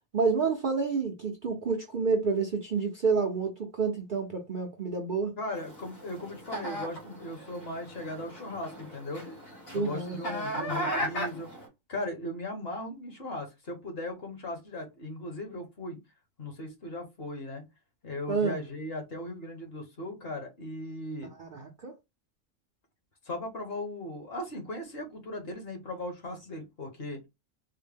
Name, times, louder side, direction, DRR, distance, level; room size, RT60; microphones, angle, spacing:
voice 1, 0.1-5.3 9.7-10.2 18.3-18.6 21.4-21.9, right 4 dB, 55° right, 0.6 m, -29 dB
voice 2, 5.4-9.2 9.7-11.5 11.9-16.0 16.4-17.6 18.0-21.3 23.2-27.2, left 1 dB, 50° left, 1.3 m, -38 dB
sound 1, 5.5-11.7, equal, 85° left, 1.9 m, -37 dB
3.9 x 2.1 x 3.4 m
omnidirectional pair, 1.4 m